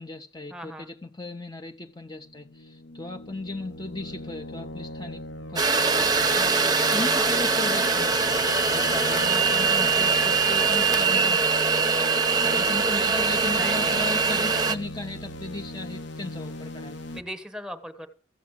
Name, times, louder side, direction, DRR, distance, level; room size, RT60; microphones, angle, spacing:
voice 1, 0.0-5.2 5.5-6.5 6.9-11.6 12.2-17.0, left 2 dB, 25° left, 0.7 m, -37 dB
voice 2, 0.5-0.9 6.9-7.4 12.8-13.3 13.6-14.1 17.1-18.1, equal, 5° right, 1.2 m, -38 dB
sound 1, 2.0-17.2, left 1 dB, 75° left, 1.2 m, -39 dB
sound 2, 5.6-14.8, right 4 dB, 20° right, 0.8 m, -22 dB
14.5 x 7.3 x 7.4 m
head